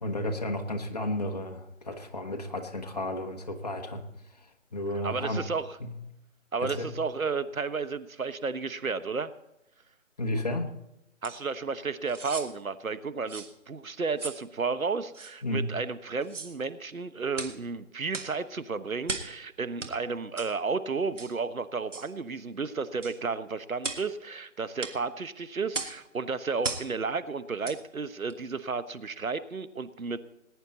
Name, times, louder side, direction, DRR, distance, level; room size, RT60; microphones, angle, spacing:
voice 1, 0.0-4.0 4.7-5.5 5.8-5.9 6.6-6.9 10.2-10.7 15.4-15.7, left 1 dB, 30° left, 3 dB, 1.1 m, -32 dB
voice 2, 5.0-5.8 6.5-9.3 11.2-30.2, right 4 dB, 90° right, 13 dB, 1.1 m, -32 dB
sound 1, 11.2-11.4 12.1-12.5 13.3-13.5 14.2-14.4 15.1-15.3 16.2-16.6 17.3-17.6 18.1-18.4 19.0-19.4 19.8-19.9 20.4-20.5 21.2-21.4 21.9-22.1 23.0-23.2 23.8-24.1 24.8-25.0 25.7-26.0 26.6-26.9 27.6-27.8 28.3-28.4, right 3 dB, 65° right, 1.8 m, -36 dB
20.0 x 9.9 x 4.1 m, 0.88 s
figure-of-eight pair, 165°, 40 cm